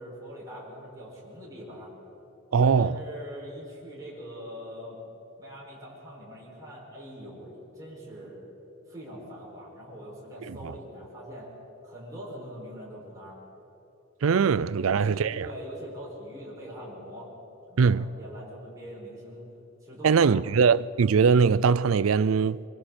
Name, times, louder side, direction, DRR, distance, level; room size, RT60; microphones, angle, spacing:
voice 1, 0.0-1.9 2.5-5.0 5.4-8.5 8.9-11.5 11.8-13.4 14.7-17.3 17.7-19.4 19.8-20.5, equal, 15° right, 6.1 m, -42 dB
voice 2, 2.5-2.9 10.5-10.7 14.2-15.5 17.8-18.1 20.0-22.6, right 5 dB, 80° right, 0.4 m, -21 dB
26.5 x 24.5 x 4.4 m
head